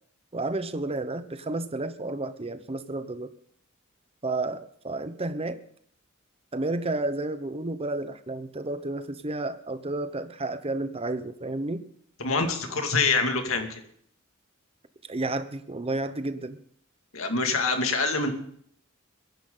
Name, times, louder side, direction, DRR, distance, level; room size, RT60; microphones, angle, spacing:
voice 1, 0.3-3.3 4.2-5.6 6.5-11.9 15.1-16.6, right 2 dB, 30° right, 11 dB, 0.9 m, -31 dB
voice 2, 12.2-13.8 17.1-18.3, left 3 dB, 90° left, 5 dB, 2.2 m, -25 dB
22.0 x 10.5 x 3.9 m, 0.65 s
head